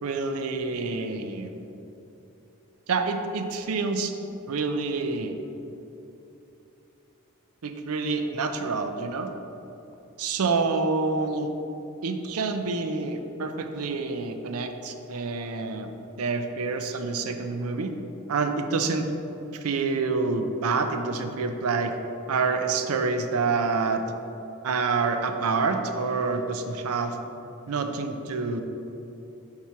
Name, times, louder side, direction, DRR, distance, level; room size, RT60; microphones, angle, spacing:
voice 1, 0.0-1.5 2.9-4.1 4.5-5.3 7.6-9.3 10.2-11.5 12.0-15.9 16.2-17.9 18.3-19.1 19.5-21.9 22.3-24.0 24.6-27.2 27.7-28.6, right 4 dB, 75° right, 6 dB, 0.5 m, -27 dB
4.7 x 4.3 x 5.7 m, 3.0 s
head